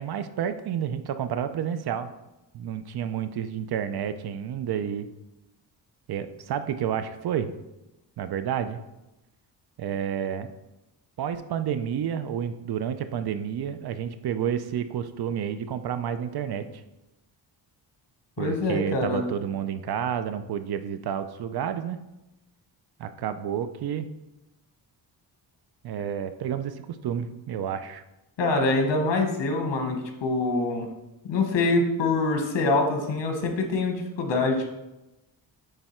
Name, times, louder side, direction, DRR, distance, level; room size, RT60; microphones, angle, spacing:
voice 1, 0.0-2.1 2.5-5.1 6.1-7.5 8.2-8.8 9.8-10.5 11.2-16.7 18.4-22.0 23.0-24.1 25.8-28.0, right 8 dB, 60° right, 10 dB, 0.5 m, -30 dB
voice 2, 18.4-19.3 28.4-30.9 31.2-34.7, left 3 dB, 80° left, 4 dB, 1.2 m, -25 dB
8.9 x 3.4 x 4.3 m, 0.96 s
wide cardioid pair, 135°, 43 cm